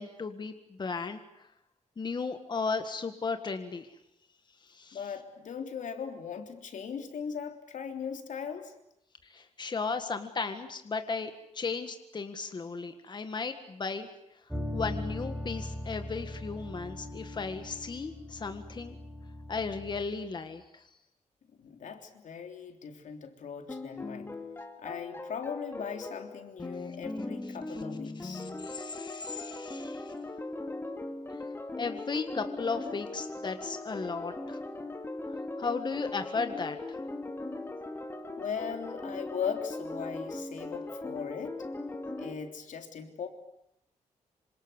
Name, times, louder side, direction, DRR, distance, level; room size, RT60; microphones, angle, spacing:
voice 1, 0.0-1.5 2.0-4.0 4.6-5.1 9.2-14.1 14.7-19.0 19.5-20.9 26.9-27.0 27.7-27.8 28.2-30.1 31.8-34.6 35.6-37.0, left 4 dB, 35° left, 8 dB, 1.8 m, -35 dB
voice 2, 4.9-8.7 21.6-24.3 24.8-28.5 38.3-41.6 42.2-43.3, left 7 dB, 80° left, 6 dB, 3.5 m, -39 dB
sound 1, 14.5-20.1, left 1 dB, 5° right, 5.9 m, -39 dB
sound 2, 23.7-42.3, left 2 dB, 20° left, 2.5 m, -39 dB
27.0 x 26.5 x 8.2 m, 0.80 s
wide cardioid pair, 160°, 13 cm